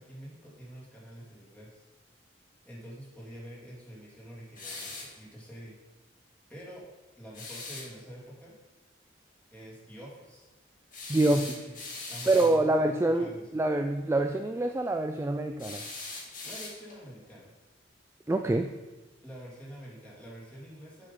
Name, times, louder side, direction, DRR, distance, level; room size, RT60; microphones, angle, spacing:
voice 1, 0.0-1.8 2.6-5.8 6.5-6.8 7.2-8.5 9.5-10.5 11.3-11.8 12.1-13.5 16.4-17.5 19.2-21.1, equal, 10° left, -7 dB, 2.6 m, -47 dB
sound 1, 4.6-5.2 7.3-7.9 10.9-12.6 15.6-17.0, left 3 dB, 45° left, 1.9 m, -41 dB
voice 2, 11.1-11.5 12.3-15.9 18.3-18.7, right 2 dB, 15° right, 6 dB, 0.3 m, -26 dB
8.0 x 5.8 x 5.4 m, 1.2 s
head